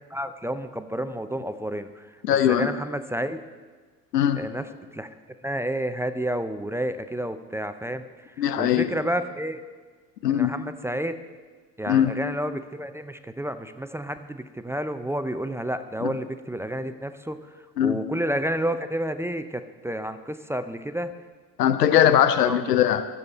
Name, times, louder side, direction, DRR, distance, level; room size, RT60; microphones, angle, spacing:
voice 1, 0.1-2.2 2.5-3.4 4.4-4.6 4.9-5.1 5.4-9.6 10.3-11.1 11.8-17.4 17.8-21.1 22.4-22.6, right 1 dB, 5° right, 10 dB, 0.5 m, -30 dB
voice 2, 2.2-2.7 4.1-4.4 8.4-8.9 10.2-10.5 11.9-12.1 16.0-16.1 17.8-18.0 21.6-23.0, left 10 dB, 85° left, 11 dB, 0.8 m, -20 dB
21.0 x 7.3 x 4.1 m, 1.5 s
hypercardioid pair, 75°, 47 cm